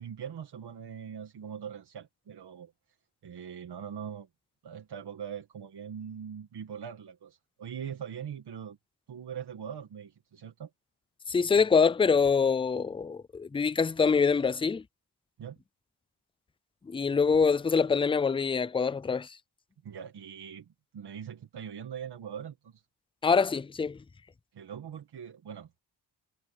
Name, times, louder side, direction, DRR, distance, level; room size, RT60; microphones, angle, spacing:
voice 1, 0.0-2.7 3.2-4.3 4.6-8.8 9.1-10.7 15.4-15.6 19.8-22.8 24.5-25.8, right 8 dB, 70° right, 2.0 m, -42 dB
voice 2, 11.3-14.8 16.9-19.4 23.2-24.0, left 5 dB, 15° left, 0.4 m, -25 dB
wide cardioid pair, 155°, 41 cm